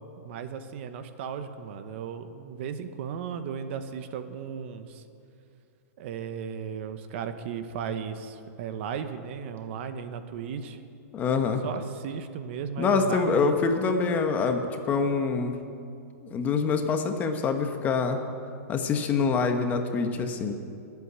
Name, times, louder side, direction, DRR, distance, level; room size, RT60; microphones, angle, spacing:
voice 1, 0.2-5.0 6.0-10.8 11.6-13.7, right 7 dB, 45° right, 9 dB, 1.1 m, -35 dB
voice 2, 11.1-11.6 12.8-15.5 16.2-18.2 18.7-20.5, left 5 dB, 20° left, 6 dB, 1.1 m, -25 dB
20.0 x 8.4 x 8.1 m, 2.5 s
hypercardioid pair, 155°, 8 cm